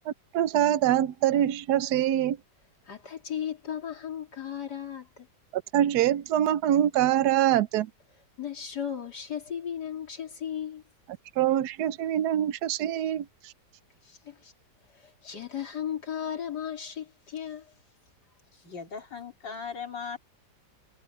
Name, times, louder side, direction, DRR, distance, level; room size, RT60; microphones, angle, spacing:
voice 1, 0.3-2.4 5.5-7.9 11.4-13.3, right 11 dB, 70° right, 1.2 m, -24 dB
voice 2, 2.9-5.3 8.4-10.8 14.0-14.5 14.9-17.7, left 9 dB, 65° left, 3.4 m, -36 dB
voice 3, 18.5-20.2, left 6 dB, 85° left, 3.9 m, -38 dB
omnidirectional pair, 1.9 m